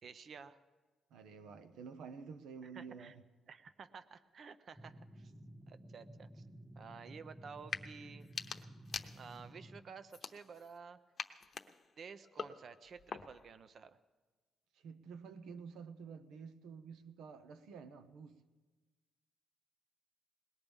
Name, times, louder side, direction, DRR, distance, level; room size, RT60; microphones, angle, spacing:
voice 1, 0.0-0.6 2.6-3.2 3.5-5.3 5.7-6.4 6.8-8.3 9.1-11.0 12.0-14.0, right 6 dB, 55° right, 0.7 m, -52 dB
voice 2, 1.1-3.1 14.7-18.3, right 5 dB, 85° right, 0.9 m, -50 dB
sound 1, 4.8-9.8, right 1 dB, 5° right, 0.9 m, -54 dB
sound 2, 7.6-7.9 8.2-9.5 10.1-10.8 11.2-13.5, left 5 dB, 40° left, 0.8 m, -45 dB
21.0 x 19.0 x 3.6 m
cardioid pair, 90°, 0 cm